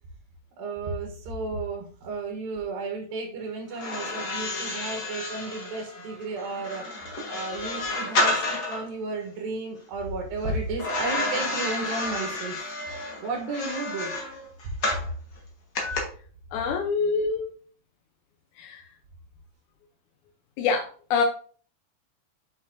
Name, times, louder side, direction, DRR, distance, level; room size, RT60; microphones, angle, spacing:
voice 1, 0.6-6.9 7.3-12.8 13.2-14.1, right 3 dB, 85° right, 1 dB, 2.9 m, -33 dB
sound 1, 3.7-8.9 10.8-15.1 15.8-16.0, left 2 dB, 50° left, 1.1 m, -30 dB
voice 2, 16.5-17.5 18.6-18.8 20.6-21.2, left 5 dB, 75° left, 2 dB, 1.9 m, -25 dB
7.0 x 6.0 x 2.6 m, 0.44 s
omnidirectional pair, 4.0 m